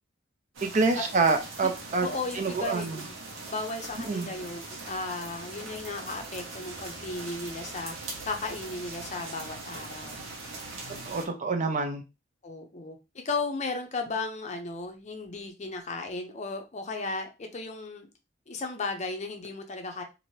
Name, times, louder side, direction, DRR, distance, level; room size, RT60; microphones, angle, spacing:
sound 1, 0.5-11.2, right 3 dB, 90° right, 1.0 m, -41 dB
voice 1, 0.6-2.1 2.4-3.0 4.1-4.3 11.0-12.0, right 4 dB, 40° right, 0.4 m, -27 dB
voice 2, 2.0-3.1 3.5-8.0 8.3-10.2 12.4-13.0 13.2-18.1 18.5-20.0, left 3 dB, 35° left, 0.5 m, -35 dB
2.7 x 2.5 x 3.1 m
head